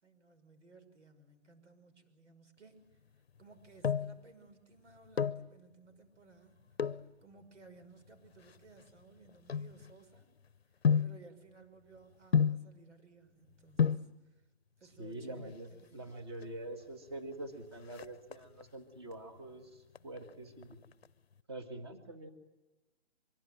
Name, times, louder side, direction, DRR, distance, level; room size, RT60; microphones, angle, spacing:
voice 1, 0.0-2.8 3.4-6.6 7.2-10.3 11.0-14.4 14.8-16.0, right 4 dB, 85° right, 8 dB, 6.0 m, -59 dB
sound 1, 3.4-4.2 5.0-5.5 6.7-7.1 7.8-10.2 10.8-11.2 12.3-12.7 13.5-13.6 13.8-14.1 15.3-15.8 16.1-16.2 16.4-16.6 16.9-17.3 17.6-18.7 19.1-19.5 19.9-21.1 21.3-21.4, left 7 dB, 60° left, 0.8 m, -32 dB
voice 2, 15.0-15.7 15.9-20.8 21.5-22.3, right 1 dB, 25° right, 5 dB, 1.8 m, -45 dB
24.5 x 23.0 x 7.8 m, 1.1 s
hypercardioid pair, 180°, 35 cm